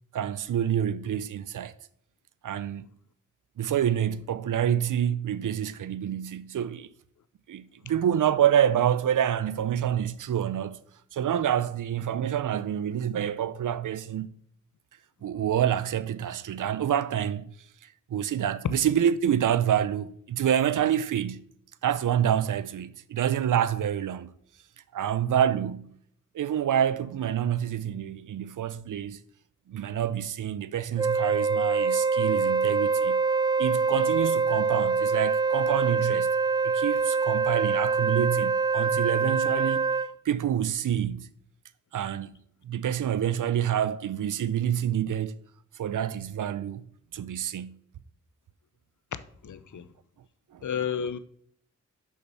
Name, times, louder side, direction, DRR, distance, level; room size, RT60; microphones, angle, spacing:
voice 1, 0.1-1.7 2.4-2.8 3.6-6.9 7.5-10.8 11.1-14.3 15.2-17.5 18.1-21.4 21.8-24.3 24.9-25.9 26.3-29.2 29.7-33.2 33.6-36.3 36.6-39.9 40.3-41.3 41.9-42.3 42.6-45.3 45.7-46.8 47.1-47.8 50.5-50.7, right 9 dB, 85° right, 0.5 m, -27 dB
Wind instrument woodwind instrument, 31.0-40.1, right 4 dB, 15° right, 0.3 m, -25 dB
voice 2, 49.4-49.9 50.6-51.2, left 7 dB, 75° left, 0.7 m, -31 dB
6.1 x 6.0 x 5.5 m
cardioid pair, 40°, 30 cm